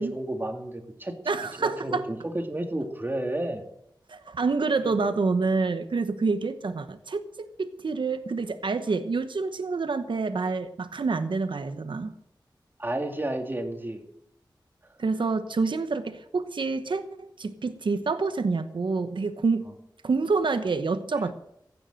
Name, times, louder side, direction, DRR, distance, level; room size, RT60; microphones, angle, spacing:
voice 1, 0.0-1.1 1.6-3.6 4.8-4.9 12.8-14.0, right 1 dB, 25° right, 4 dB, 2.3 m, -31 dB
voice 2, 1.3-2.1 4.1-12.1 15.0-19.6 20.0-21.3, right 4 dB, 80° right, 9 dB, 1.0 m, -27 dB
15.5 x 9.5 x 7.7 m, 0.76 s
wide cardioid pair, 90°, 8 cm